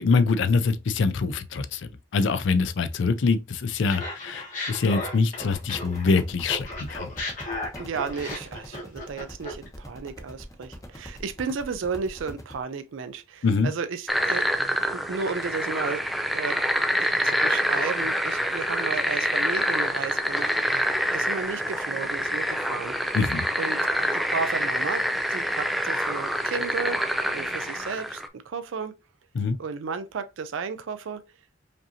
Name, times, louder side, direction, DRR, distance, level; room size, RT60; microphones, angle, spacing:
voice 1, 0.0-7.1 13.4-13.7 23.1-23.5 29.4-29.6, left 4 dB, 70° left, 0.4 m, -24 dB
Laughter, 3.9-6.2 6.5-9.7, left 2 dB, 40° left, 1.4 m, -35 dB
sound 1, 5.4-12.5, equal, 20° left, 1.1 m, -43 dB
voice 2, 7.8-14.5 14.9-16.0 16.3-16.6 17.0-20.8 21.1-22.9 23.6-23.8 24.1-27.0 27.3-28.9 29.6-31.2, right 5 dB, 85° right, 0.4 m, -33 dB
sound 2, 14.1-28.3, equal, ahead, 0.3 m, -26 dB
5.1 x 2.7 x 2.7 m
head